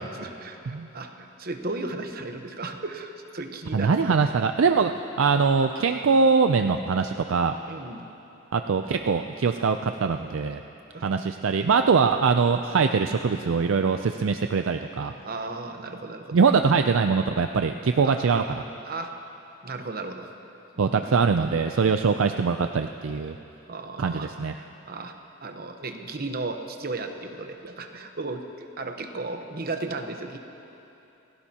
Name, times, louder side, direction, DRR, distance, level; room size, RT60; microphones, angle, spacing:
voice 1, 0.0-4.2 7.7-8.1 10.9-11.1 15.2-16.4 18.0-18.1 18.8-19.1 19.6-20.3 20.8-21.0 23.7-25.1 25.4-30.4, right 3 dB, 45° right, 5 dB, 1.0 m, -35 dB
voice 2, 3.7-4.9 5.2-7.5 8.5-10.6 11.0-15.1 16.3-18.6 20.8-23.3 24.0-24.5, right 5 dB, 65° right, 7 dB, 0.4 m, -22 dB
28.5 x 16.5 x 2.9 m, 3.0 s
head